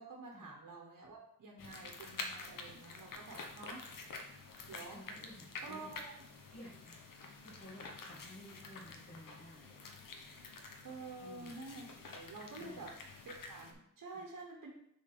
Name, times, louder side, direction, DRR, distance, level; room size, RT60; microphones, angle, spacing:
voice 1, 0.0-3.9 4.7-5.0 5.6-6.3 10.8-12.9 13.2-14.7, right 3 dB, 65° right, 0 dB, 1.1 m, -49 dB
sound 1, 1.6-13.7, left 3 dB, 85° left, 1.0 m, -49 dB
voice 2, 4.9-5.9 6.5-7.0 7.4-10.0 11.2-11.5 12.6-12.9 14.1-14.2, left 1 dB, 30° left, -10 dB, 2.1 m, -54 dB
6.5 x 3.9 x 5.4 m, 0.74 s
wide cardioid pair, 105°, 32 cm